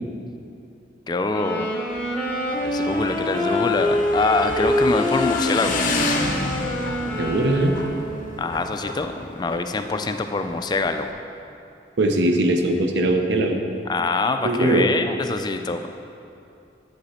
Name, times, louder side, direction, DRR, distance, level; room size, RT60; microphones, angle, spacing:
voice 1, 1.1-1.7 2.6-5.9 8.4-11.1 13.9-15.9, left 3 dB, 25° left, 7 dB, 0.3 m, -24 dB
sound 1, 1.3-8.4, left 1 dB, 5° left, 0.8 m, -25 dB
Motorcycle / Engine, 1.9-11.1, left 3 dB, 45° left, 0.7 m, -31 dB
voice 2, 7.2-7.8 12.0-13.6 14.4-14.9, right 1 dB, 85° right, 4 dB, 0.8 m, -20 dB
8.3 x 7.9 x 4.2 m, 2.6 s
head